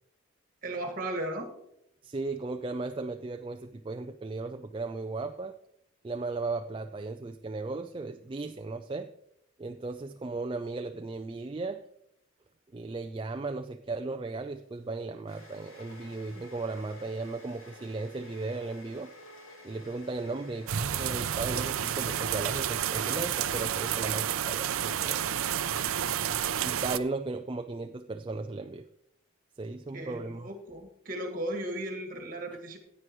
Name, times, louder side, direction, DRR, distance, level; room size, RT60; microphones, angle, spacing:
voice 1, 0.6-1.5 29.9-32.8, right 1 dB, 40° right, 4 dB, 1.8 m, -36 dB
voice 2, 2.0-5.5 6.0-9.1 9.6-11.8 12.7-19.1 19.6-26.3 26.6-28.9 29.6-30.5, right 3 dB, 25° right, 7 dB, 0.3 m, -36 dB
sound 1, 14.4-23.2, left 1 dB, 75° left, 3.4 m, -52 dB
sound 2, 20.7-27.0, right 9 dB, 80° right, 0.5 m, -30 dB
15.5 x 9.2 x 3.1 m, 0.78 s
head